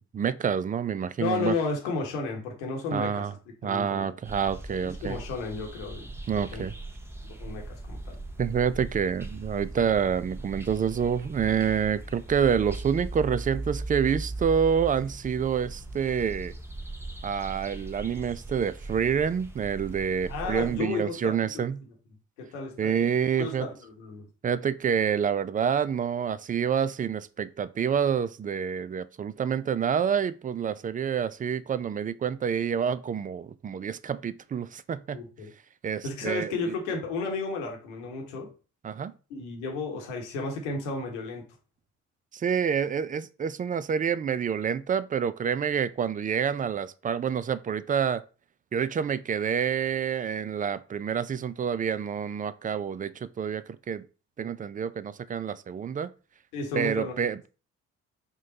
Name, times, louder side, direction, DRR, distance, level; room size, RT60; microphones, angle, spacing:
voice 1, 0.1-1.6 2.9-3.3 3.6-5.2 6.3-6.7 8.4-16.5 17.2-21.8 22.8-23.7 24.4-35.2 35.8-36.7 38.8-39.1 42.3-48.2 48.7-54.0 54.4-56.1 56.7-57.5, right 7 dB, 25° right, 0.3 m, -28 dB
voice 2, 1.2-3.4 3.6-4.1 4.8-6.6 7.3-8.2 20.3-21.7 22.4-23.1 23.3-24.3 35.1-35.5 36.0-38.5 39.3-41.4 56.5-57.1, left 3 dB, 85° left, 1.1 m, -33 dB
sound 1, 4.2-20.8, right 2 dB, 5° right, 0.8 m, -39 dB
4.9 x 2.2 x 3.9 m
hypercardioid pair, 45°, 35 cm